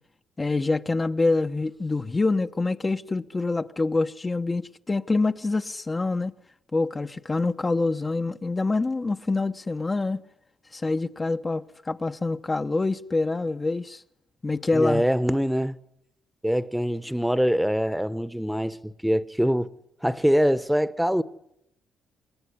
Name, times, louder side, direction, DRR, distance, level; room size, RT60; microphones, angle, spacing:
voice 1, 0.4-6.3 6.7-10.2 10.7-14.0 14.4-15.0, left 3 dB, 25° left, 1.0 m, -26 dB
voice 2, 14.7-15.8 16.4-19.7 20.0-21.2, equal, ahead, 1.2 m, -24 dB
27.5 x 21.5 x 9.8 m
cardioid pair, 90°, 0 cm